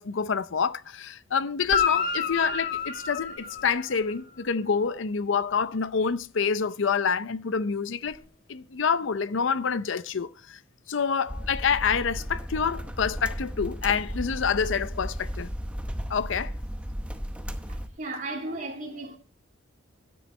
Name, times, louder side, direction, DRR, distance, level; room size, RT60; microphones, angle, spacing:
voice 1, 0.0-8.2 8.5-10.6 10.9-15.5 16.1-16.5, left 6 dB, 65° left, 0.6 m, -27 dB
Guitar, 1.6-4.2 8.1-8.2, left 7 dB, 45° left, 1.5 m, -29 dB
sound 1, 11.3-17.9, equal, 5° right, 0.8 m, -35 dB
voice 2, 18.0-19.2, right 2 dB, 40° right, 2.8 m, -34 dB
13.0 x 9.8 x 3.2 m
head